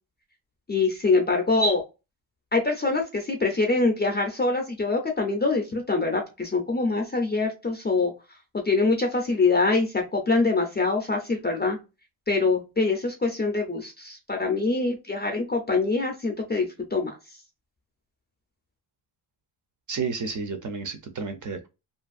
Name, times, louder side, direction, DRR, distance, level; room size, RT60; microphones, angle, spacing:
voice 1, 0.7-1.8 2.5-8.1 8.6-11.8 12.3-17.2, left 3 dB, 25° left, 0.4 m, -24 dB
voice 2, 19.9-21.7, right 5 dB, 40° right, 0.4 m, -31 dB
2.6 x 2.5 x 2.3 m
wide cardioid pair, 165°, 49 cm